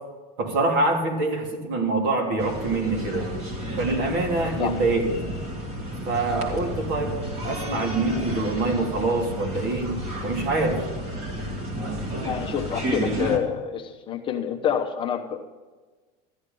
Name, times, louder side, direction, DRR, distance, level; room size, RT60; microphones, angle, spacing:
voice 1, 0.4-3.3 3.8-5.1 6.0-7.2 7.4-10.9, right 2 dB, 60° right, 1 dB, 3.1 m, -25 dB
sound 1, 2.4-13.4, equal, 30° right, 2.2 m, -31 dB
voice 2, 12.2-15.4, left 8 dB, 25° left, 2 dB, 1.0 m, -27 dB
14.0 x 11.0 x 5.3 m, 1.3 s
supercardioid pair, 155°, 21 cm